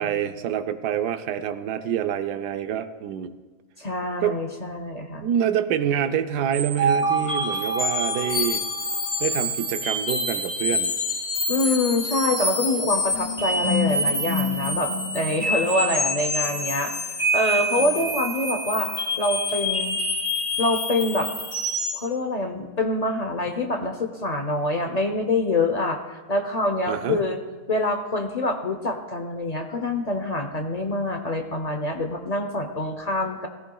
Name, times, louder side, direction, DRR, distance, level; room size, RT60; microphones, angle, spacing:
voice 1, 0.0-3.3 4.2-4.4 5.2-8.6 9.2-10.9 17.8-18.1 26.9-27.2, right 9 dB, 85° right, 9 dB, 1.2 m, -26 dB
voice 2, 3.8-5.3 11.5-16.9 17.3-18.9 19.2-20.0 20.6-21.3 21.9-27.4 27.7-33.5, left 2 dB, 60° left, 5 dB, 0.4 m, -25 dB
sound 1, 6.5-22.0, left 1 dB, 20° left, 4.1 m, -26 dB
17.0 x 14.5 x 2.3 m, 1.3 s
omnidirectional pair, 1.7 m